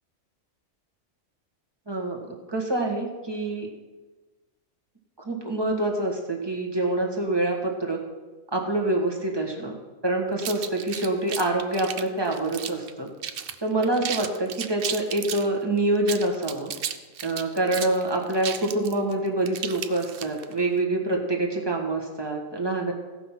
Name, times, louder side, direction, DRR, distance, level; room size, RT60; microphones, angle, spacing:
voice 1, 1.9-3.7 5.2-8.0 8.5-9.8 10.0-13.1 13.6-16.7 17.2-22.9, right 2 dB, 20° right, 0 dB, 1.5 m, -26 dB
sound 1, 10.4-12.9 13.2-13.6 13.8-15.5 16.0-20.5, right 8 dB, 60° right, 0.6 m, -34 dB
16.0 x 5.7 x 5.7 m, 1.2 s
omnidirectional pair, 1.4 m